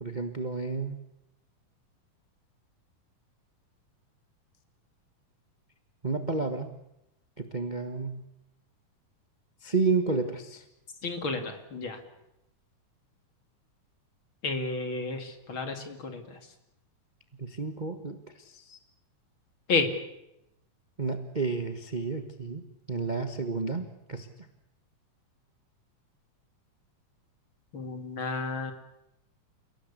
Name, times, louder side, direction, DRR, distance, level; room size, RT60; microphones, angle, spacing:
voice 1, 0.0-1.0 6.0-6.7 7.4-8.2 9.6-10.6 17.4-18.2 18.7-18.8 21.0-22.6 22.9-24.3, right 4 dB, 40° right, 7 dB, 0.6 m, -31 dB
voice 2, 11.0-12.0 14.4-16.4 19.7-19.9 27.7-28.7, left 3 dB, 40° left, 6 dB, 2.9 m, -31 dB
29.5 x 17.5 x 8.3 m, 0.85 s
omnidirectional pair, 3.7 m